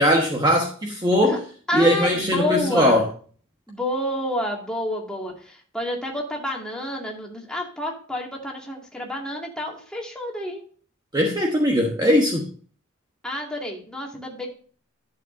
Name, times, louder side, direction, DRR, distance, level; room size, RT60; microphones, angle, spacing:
voice 1, 0.0-1.4 1.7-3.0 11.1-12.5, equal, 20° right, 1 dB, 1.2 m, -20 dB
voice 2, 1.7-3.0 3.7-10.6 13.2-14.5, left 1 dB, 5° left, -1 dB, 2.2 m, -29 dB
12.0 x 7.2 x 2.6 m, 0.42 s
head